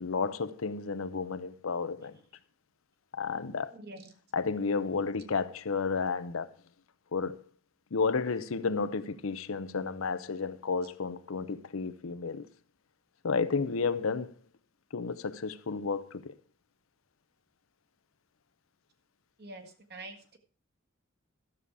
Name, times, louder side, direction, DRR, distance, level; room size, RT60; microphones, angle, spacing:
voice 1, 0.0-2.2 3.1-3.7 4.3-6.5 7.1-7.4 7.9-12.5 13.2-14.3 14.9-16.3, left 5 dB, 80° left, 0.7 m, -32 dB
voice 2, 3.7-4.1 19.4-20.4, right 2 dB, 50° right, 1.6 m, -46 dB
12.5 x 7.0 x 4.8 m
head